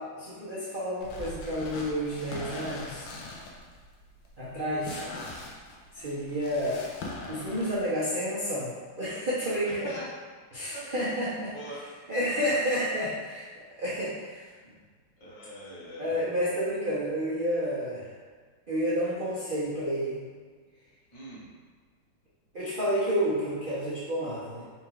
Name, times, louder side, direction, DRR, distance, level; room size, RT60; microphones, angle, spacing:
voice 1, 0.0-3.1 4.4-5.0 5.9-6.8 7.3-9.9 10.5-11.5 12.1-13.5 13.8-14.4 16.0-18.1 18.7-20.2 22.5-24.6, equal, 60° right, -9 dB, 0.5 m, -30 dB
sound 1, 1.0-7.8, left 2 dB, 85° left, 1.5 m, -41 dB
voice 2, 9.6-10.1 10.7-10.9 11.4-11.8 14.5-14.6 15.2-16.2 21.1-21.5, right 1 dB, 60° left, -8 dB, 2.0 m, -43 dB
4.3 x 2.4 x 4.6 m, 1.5 s
omnidirectional pair, 2.2 m